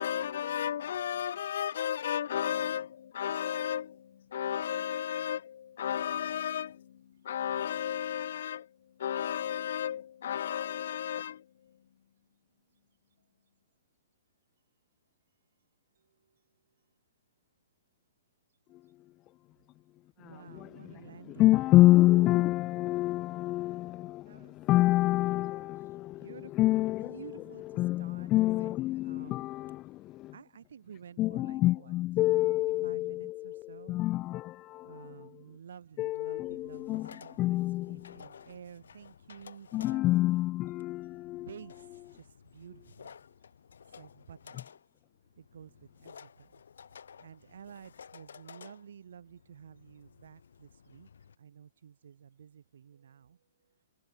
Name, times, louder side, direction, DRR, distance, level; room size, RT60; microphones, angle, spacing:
voice 1, 0.0-11.8, left 10 dB, 65° left, 3.8 m, -34 dB
voice 2, 16.0-16.3 20.2-21.6 21.9-23.1 23.6-23.8 24.2-24.6 24.9-25.7 26.2-29.5 30.3-31.9 32.6-34.0 34.8-40.0 41.4-43.2 44.0-44.7 45.4-46.6 47.2-51.1 51.4-53.4, right 8 dB, 75° right, 5.1 m, -52 dB
voice 3, 20.2-20.9 21.4-27.2 27.8-30.3 31.2-35.3 36.0-38.2 39.7-41.5, left 17 dB, 25° left, 0.3 m, -27 dB
sound 1, 36.4-51.4, left 7 dB, 85° left, 7.4 m, -54 dB
hypercardioid pair, 150°, 0 cm